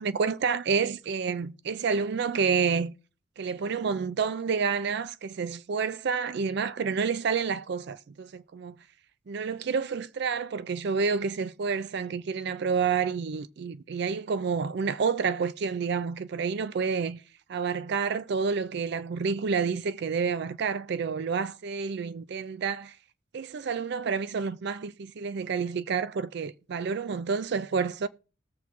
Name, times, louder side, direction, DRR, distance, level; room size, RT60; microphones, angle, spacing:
voice 1, 0.0-2.9 3.4-8.8 9.3-17.2 17.5-22.9 23.3-28.1, right 5 dB, 60° right, 0.4 m, -29 dB
19.5 x 7.0 x 3.0 m
head